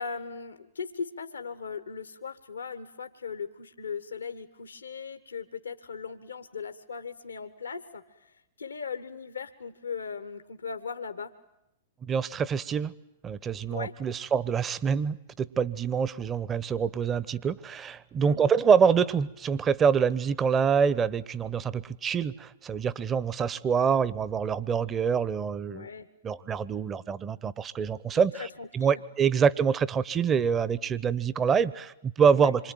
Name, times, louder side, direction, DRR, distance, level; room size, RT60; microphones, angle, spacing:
voice 1, 0.0-11.3 13.7-13.9 18.2-18.5 25.7-26.1 28.1-29.0 32.3-32.5, left 5 dB, 80° left, 10 dB, 1.3 m, -38 dB
voice 2, 12.1-12.9 13.2-25.9 26.2-28.5 28.7-32.7, right 6 dB, 25° right, 18 dB, 1.0 m, -26 dB
26.5 x 24.0 x 9.3 m, 0.85 s
figure-of-eight pair, 105°, 0 cm